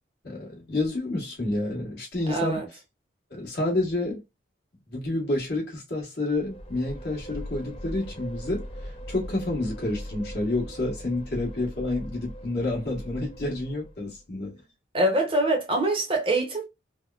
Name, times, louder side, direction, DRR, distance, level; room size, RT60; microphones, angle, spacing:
voice 1, 0.2-2.6 3.3-4.2 4.9-8.7 9.1-14.5, left 2 dB, 55° left, 1.4 m, -29 dB
voice 2, 2.3-2.7 14.9-16.6, right 1 dB, 30° right, 0.7 m, -24 dB
sound 1, 6.3-14.2, equal, 30° left, 0.5 m, -40 dB
3.4 x 2.1 x 2.3 m
head